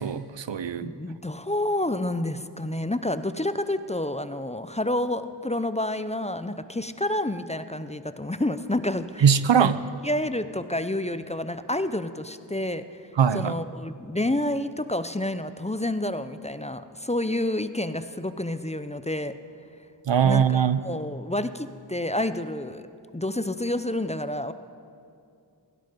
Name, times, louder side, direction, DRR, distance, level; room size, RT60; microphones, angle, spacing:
voice 1, 0.0-0.9 9.2-9.8 13.2-13.5 20.1-20.8, right 7 dB, 75° right, 14 dB, 0.6 m, -21 dB
voice 2, 0.8-9.3 9.6-9.7 10.0-13.0 13.3-19.3 20.2-22.9 23.1-24.5, left 1 dB, 15° left, 12 dB, 0.5 m, -29 dB
16.5 x 16.0 x 5.3 m, 2.4 s
wide cardioid pair, 45°, 44 cm